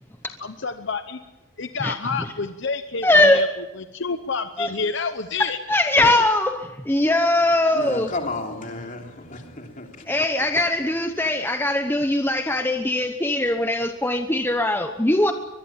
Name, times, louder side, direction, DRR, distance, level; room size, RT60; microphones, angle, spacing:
voice 1, 0.4-1.2 1.6-5.6, left 4 dB, 60° left, 0.9 m, -29 dB
voice 2, 3.0-3.4 4.6-4.7 5.7-8.1 10.1-15.3, left 1 dB, 10° left, 1.0 m, -20 dB
voice 3, 7.7-9.9, left 2 dB, 40° left, 3.4 m, -32 dB
23.5 x 22.0 x 7.4 m
head